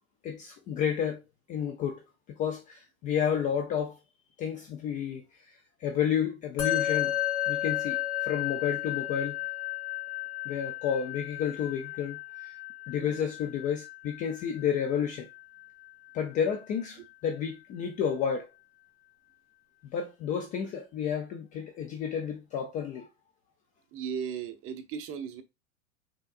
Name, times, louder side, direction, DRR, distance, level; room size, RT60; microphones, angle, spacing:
voice 1, 0.2-1.2 1.5-2.0 2.4-4.0 4.4-7.1 7.5-9.4 10.4-12.6 12.9-15.3 16.1-18.5 19.8-23.1, left 8 dB, 20° left, 0.4 m, -31 dB
Musical instrument, 6.6-16.1, left 14 dB, 55° left, 2.1 m, -33 dB
voice 2, 12.9-13.3 23.9-25.4, right 7 dB, 30° right, 0.9 m, -37 dB
5.6 x 3.7 x 2.5 m
hypercardioid pair, 105°, 42 cm